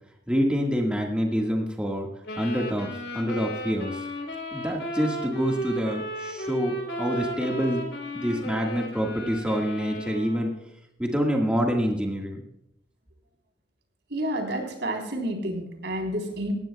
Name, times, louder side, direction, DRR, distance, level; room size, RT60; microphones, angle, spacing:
voice 1, 0.3-2.1 2.4-4.1 4.5-7.9 8.1-10.6 11.0-12.4, equal, 5° right, 0 dB, 1.6 m, -27 dB
sound 1, 2.2-10.6, equal, 80° left, 3.7 m, -35 dB
voice 2, 14.1-16.5, right 1 dB, 70° right, 2 dB, 3.6 m, -30 dB
18.5 x 15.0 x 2.3 m, 0.81 s
head